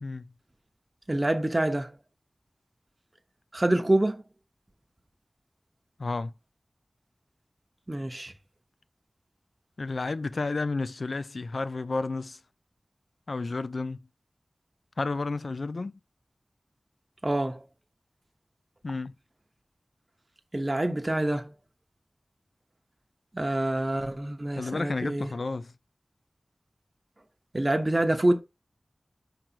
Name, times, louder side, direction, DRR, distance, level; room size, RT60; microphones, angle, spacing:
voice 1, 1.1-1.9 3.5-4.2 7.9-8.3 17.2-17.6 20.5-21.5 23.3-25.3 27.5-28.4, right 1 dB, 30° right, 0.8 m, -26 dB
voice 2, 6.0-6.3 9.8-12.4 13.3-14.0 15.0-15.9 18.8-19.1 24.6-25.7, left 3 dB, 80° left, 0.4 m, -31 dB
5.0 x 4.6 x 4.5 m
wide cardioid pair, 50°, 0 cm